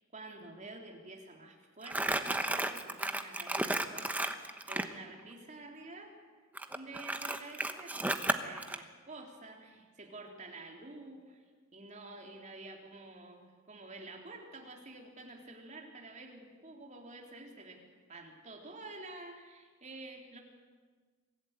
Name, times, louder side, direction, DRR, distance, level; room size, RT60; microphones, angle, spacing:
voice 1, 0.0-6.2 6.7-11.4 11.7-17.8 18.1-20.4, right 2 dB, 35° right, 1 dB, 3.5 m, -49 dB
Crumpling crinkling, 1.8-4.9 6.6-8.8, right 1 dB, 10° right, 1.0 m, -33 dB
24.5 x 15.5 x 9.0 m, 1.5 s
head